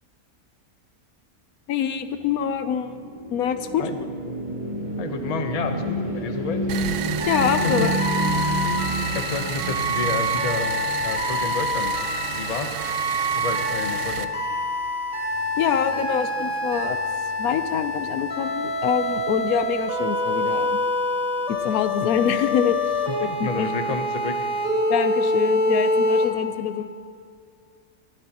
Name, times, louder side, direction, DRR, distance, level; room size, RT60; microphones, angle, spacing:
voice 1, 1.7-3.0 3.3-3.8 7.3-8.0 15.6-17.0 17.4-20.8 21.5-23.7 24.9-26.9, left 8 dB, 80° left, 10 dB, 1.1 m, -25 dB
sound 1, 2.3-11.6, right 1 dB, 30° right, 2.8 m, -29 dB
voice 2, 5.0-6.6 7.6-7.9 9.1-10.7 11.0-12.0 12.3-12.7 13.4-14.3 23.2-24.4, left 4 dB, 35° left, 6 dB, 0.7 m, -30 dB
sound 2, 6.7-14.2, right 10 dB, 70° right, 0.8 m, -31 dB
sound 3, 7.2-26.2, left 1 dB, 5° right, 3.7 m, -26 dB
22.5 x 11.0 x 2.9 m, 2.2 s
omnidirectional pair, 1.5 m